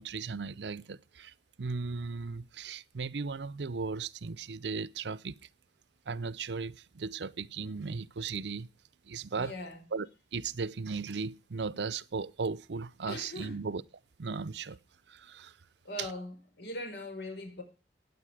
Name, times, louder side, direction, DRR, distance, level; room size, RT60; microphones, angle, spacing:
voice 1, 0.0-5.4 6.1-8.7 9.0-9.6 9.9-10.1 10.3-13.8 14.2-14.8 15.1-15.5 16.0-16.1, right 4 dB, 75° right, 0.6 m, -36 dB
voice 2, 9.4-9.8 13.0-13.6 15.8-17.6, left 1 dB, 80° left, 4.9 m, -40 dB
16.0 x 9.6 x 4.8 m
head